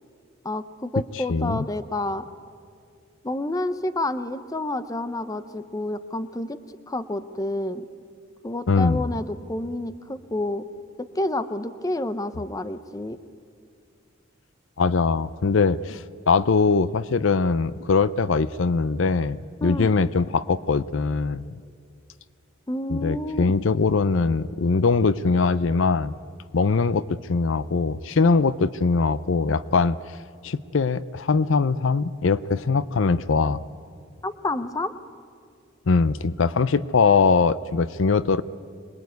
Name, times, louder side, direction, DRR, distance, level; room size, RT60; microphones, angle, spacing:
voice 1, 0.4-2.2 3.2-6.6 6.9-7.9 8.4-10.7 11.0-13.2 19.6-19.9 22.7-23.5 34.2-34.9, left 1 dB, 15° left, 12 dB, 0.7 m, -29 dB
voice 2, 1.3-1.6 8.7-9.0 14.8-21.6 22.9-26.1 26.5-30.0 30.4-33.6 35.9-38.4, left 4 dB, 65° left, 17 dB, 0.5 m, -22 dB
25.5 x 20.5 x 9.4 m, 2.4 s
head